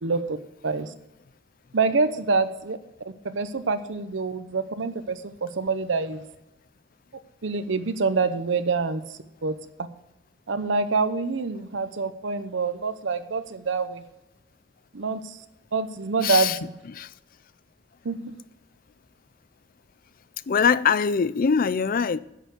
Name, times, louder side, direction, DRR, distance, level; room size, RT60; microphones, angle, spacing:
voice 1, 0.0-0.4 0.6-0.9 1.7-2.8 3.2-6.3 7.4-9.6 10.5-14.0 14.9-15.4 15.7-16.7 18.0-18.3, right 4 dB, 80° right, 0.8 m, -26 dB
voice 2, 16.2-16.6 16.9-17.1 20.5-22.2, left 6 dB, 50° left, 0.4 m, -22 dB
10.0 x 6.7 x 7.8 m
head